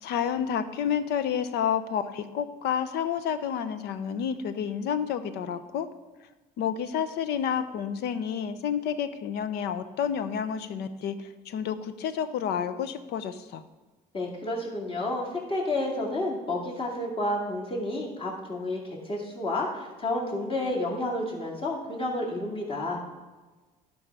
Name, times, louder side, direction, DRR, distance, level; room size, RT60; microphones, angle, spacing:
voice 1, 0.0-5.9 6.6-13.6, left 8 dB, 80° left, 11 dB, 0.7 m, -30 dB
voice 2, 14.1-23.0, left 1 dB, 35° left, -2 dB, 2.3 m, -30 dB
11.5 x 5.4 x 4.7 m, 1.2 s
cardioid pair, 110°, 17 cm